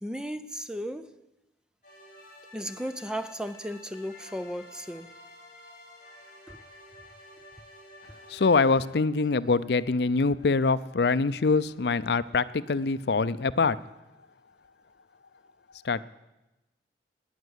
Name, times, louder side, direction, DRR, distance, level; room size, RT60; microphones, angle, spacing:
voice 1, 0.0-1.2 2.5-5.1 6.5-6.6, equal, 5° right, 0.5 m, -35 dB
sound 1, 1.8-8.8, left 1 dB, 50° left, 7.2 m, -51 dB
voice 2, 8.3-13.8 15.8-16.0, left 4 dB, 70° left, 0.5 m, -24 dB
18.5 x 9.6 x 8.1 m
head